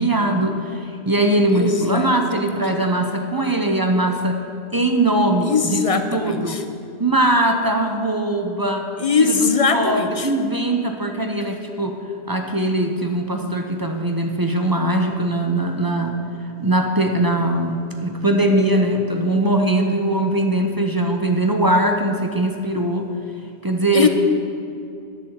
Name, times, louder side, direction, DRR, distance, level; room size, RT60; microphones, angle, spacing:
voice 1, 0.0-4.4 4.7-6.6 7.0-8.9 9.2-9.5 9.7-12.0 12.3-16.2 16.6-23.1 23.6-24.1, right 1 dB, 20° right, 4 dB, 0.7 m, -21 dB
voice 2, 1.5-2.1 5.5-6.6 9.0-10.3 23.9-24.1, left 5 dB, 35° left, 7 dB, 0.6 m, -20 dB
11.0 x 7.0 x 8.0 m, 2.6 s
omnidirectional pair, 1.3 m